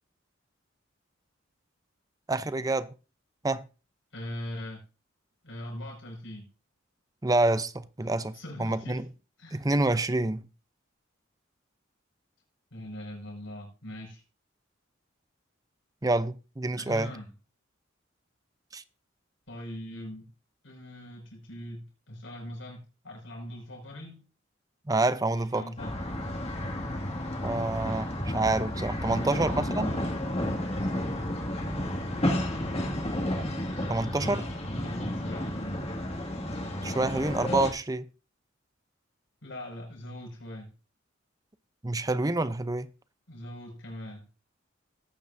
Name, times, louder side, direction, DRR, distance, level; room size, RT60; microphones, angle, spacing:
voice 1, 2.3-2.9 3.4-3.6 7.2-9.0 9.5-10.4 16.0-17.1 18.7-18.8 24.9-25.7 27.4-29.9 33.9-34.4 36.8-38.0 41.8-42.9, right 2 dB, 20° right, 0.6 m, -27 dB
voice 2, 4.1-4.8 5.4-6.5 8.3-9.0 9.4-9.7 12.7-14.2 16.8-17.3 19.5-20.3 20.6-24.2 25.3-26.0 29.1-30.0 34.2-35.9 39.4-40.7 43.3-44.3, left 1 dB, 75° left, 5.7 m, -41 dB
sound 1, 25.8-37.7, left 1 dB, 30° left, 2.3 m, -32 dB
18.5 x 9.1 x 2.7 m
head